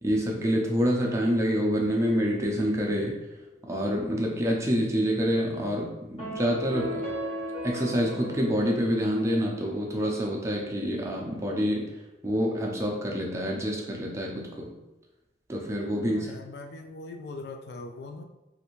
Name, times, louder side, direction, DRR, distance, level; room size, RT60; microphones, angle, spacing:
voice 1, 0.0-3.2 3.6-7.0 7.6-11.9 12.2-14.7 15.5-16.3, equal, 15° right, -2 dB, 0.4 m, -27 dB
sound 1, 6.2-9.7, equal, 30° left, 1.0 m, -36 dB
voice 2, 16.1-18.2, left 3 dB, 60° left, 4 dB, 0.3 m, -41 dB
3.2 x 2.5 x 3.0 m, 1.0 s
head